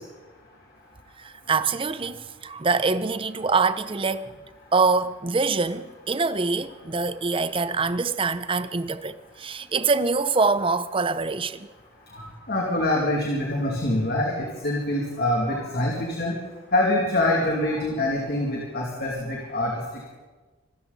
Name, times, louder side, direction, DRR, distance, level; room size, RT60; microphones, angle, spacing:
voice 1, 1.2-4.4 4.7-11.7, right 4 dB, 25° right, 0.6 m, -25 dB
voice 2, 12.1-16.3 16.7-19.7, left 1 dB, 50° left, 2.6 m, -25 dB
25.0 x 14.0 x 4.1 m
head